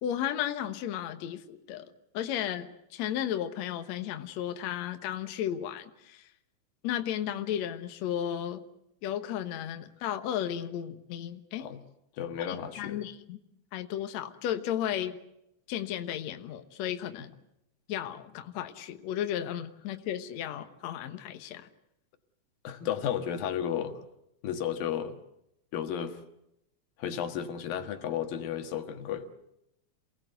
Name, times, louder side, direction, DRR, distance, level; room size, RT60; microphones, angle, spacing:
voice 1, 0.0-1.9 2.1-6.2 6.8-8.6 9.0-11.7 12.4-13.4 13.7-15.2 15.7-17.3 17.9-21.7, left 10 dB, 65° left, 8 dB, 2.2 m, -34 dB
voice 2, 12.2-13.0 22.6-24.0 24.4-25.2 25.7-26.2 27.0-29.3, left 9 dB, 90° left, 7 dB, 3.4 m, -33 dB
28.0 x 18.5 x 8.0 m, 0.81 s
omnidirectional pair, 3.9 m